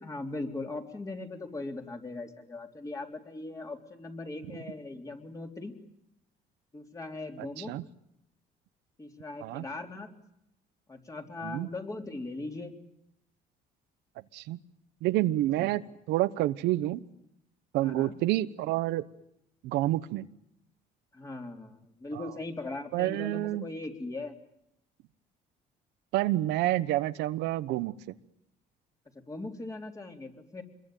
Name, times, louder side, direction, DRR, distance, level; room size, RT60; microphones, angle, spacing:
voice 1, 0.0-5.7 6.7-7.7 9.0-10.1 10.9-12.7 15.6-15.7 17.8-18.2 21.1-24.4 29.3-30.6, left 2 dB, 20° left, 3 dB, 3.6 m, -39 dB
voice 2, 7.4-7.8 9.4-9.6 11.4-11.7 14.3-14.6 15.0-15.8 16.1-17.0 17.7-19.0 19.6-20.3 22.1-22.3 22.9-23.7 26.1-27.9, right 15 dB, 90° right, 12 dB, 1.0 m, -28 dB
26.0 x 22.0 x 9.2 m, 0.78 s
cardioid pair, 110°, 17 cm